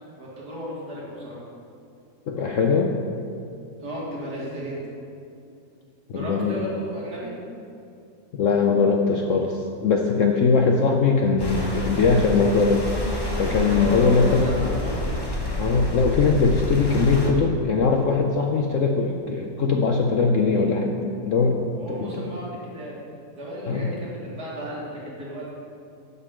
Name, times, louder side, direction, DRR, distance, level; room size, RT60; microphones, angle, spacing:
voice 1, 0.2-1.4 3.8-4.8 6.1-7.3 13.7-15.2 16.8-17.0 21.8-23.0 23.4-25.5, equal, 65° right, -6 dB, 2.8 m, -34 dB
voice 2, 2.3-3.0 6.1-6.7 8.3-12.8 13.4-14.6 15.6-20.9 21.2-21.6 21.9-22.2 23.7-23.9, left 4 dB, 65° left, 2 dB, 0.8 m, -21 dB
sound 1, 11.4-17.3, left 1 dB, 15° left, 0.9 m, -28 dB
8.2 x 5.4 x 7.4 m, 2.6 s
omnidirectional pair, 1.8 m